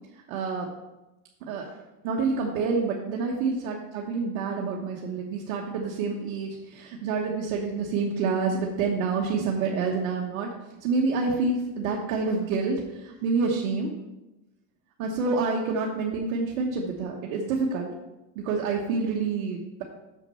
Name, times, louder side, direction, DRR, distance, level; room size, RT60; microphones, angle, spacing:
voice 1, 0.3-0.7 1.5-1.7 2.0-10.5 10.8-13.9 15.0-17.9 18.3-19.8, right 4 dB, 75° right, -1 dB, 1.3 m, -28 dB
6.8 x 5.8 x 5.6 m, 1.0 s
supercardioid pair, 120°, 41 cm